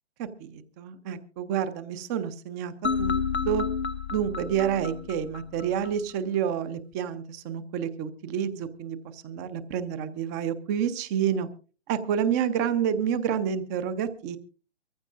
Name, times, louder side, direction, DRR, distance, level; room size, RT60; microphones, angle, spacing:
voice 1, 0.2-2.7 3.0-3.1 3.5-3.6 4.1-11.5 11.9-14.4, right 8 dB, 15° right, 13 dB, 0.7 m, -29 dB
sound 1, 2.8-5.9, left 6 dB, 75° left, 0.9 m, -30 dB
24.0 x 15.0 x 2.5 m, 0.36 s
figure-of-eight pair, 130°, 33 cm